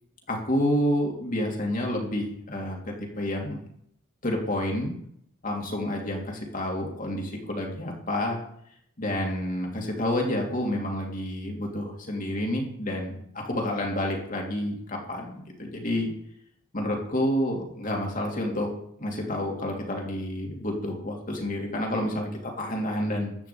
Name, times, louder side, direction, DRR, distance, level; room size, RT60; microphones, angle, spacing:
voice 1, 0.3-2.8 3.2-3.6 4.2-4.9 5.4-8.4 9.0-16.1 16.7-18.7 19.0-23.3, left 1 dB, 35° left, 0 dB, 3.0 m, -29 dB
13.5 x 5.9 x 8.5 m, 0.70 s
head